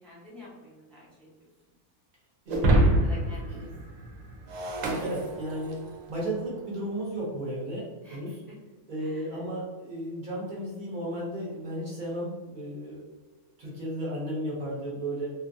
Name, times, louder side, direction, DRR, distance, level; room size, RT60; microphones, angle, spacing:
voice 1, 0.0-1.5 3.0-3.7 8.0-8.2 9.0-9.4, left 1 dB, ahead, -7 dB, 0.6 m, -48 dB
voice 2, 2.5-2.9 3.5-3.7 4.8-5.8 6.1-8.4 8.9-13.0 13.6-15.5, right 1 dB, 45° right, -5 dB, 0.7 m, -34 dB
Shatter, 2.5-6.0, right 1 dB, 70° right, 1.0 m, -26 dB
2.6 x 2.5 x 2.6 m, 1.3 s
omnidirectional pair, 1.6 m